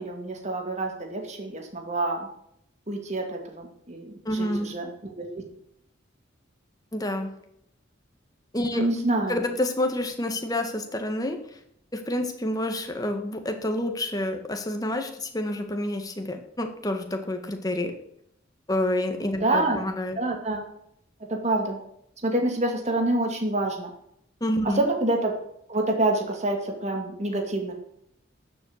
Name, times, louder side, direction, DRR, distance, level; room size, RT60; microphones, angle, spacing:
voice 1, 0.0-2.3 2.9-5.4 8.7-9.4 19.4-19.8 20.2-20.6 21.3-21.8 22.2-23.9 24.6-25.3 25.7-27.7, right 2 dB, 35° right, 2 dB, 2.5 m, -27 dB
voice 2, 4.2-4.7 6.9-7.3 8.5-8.9 9.3-11.4 11.9-17.9 18.7-20.2 24.4-24.8, left 1 dB, 20° left, 5 dB, 1.7 m, -28 dB
12.5 x 7.7 x 8.1 m, 0.75 s
head